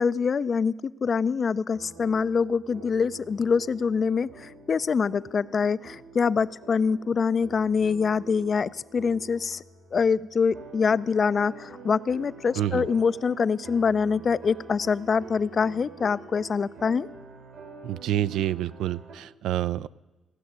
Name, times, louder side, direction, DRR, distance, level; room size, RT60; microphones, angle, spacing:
voice 1, 0.0-9.6 9.9-17.1, left 5 dB, 45° left, 18 dB, 0.4 m, -25 dB
sound 1, 1.7-19.2, right 3 dB, 70° right, 2.2 m, -47 dB
voice 2, 12.5-12.9 17.8-19.9, right 12 dB, 85° right, 17 dB, 0.3 m, -28 dB
16.5 x 6.2 x 9.4 m, 1.1 s
cardioid pair, 90°, 0 cm